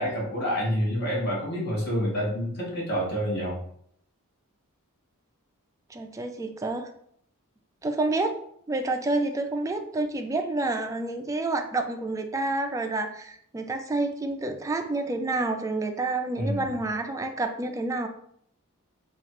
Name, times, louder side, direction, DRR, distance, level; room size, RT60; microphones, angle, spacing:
voice 1, 0.0-3.6 16.4-16.7, equal, 50° left, -3 dB, 1.3 m, -28 dB
voice 2, 5.9-6.9 7.8-8.4 8.7-18.1, right 2 dB, 15° right, 5 dB, 0.3 m, -29 dB
3.0 x 2.4 x 4.3 m, 0.66 s
head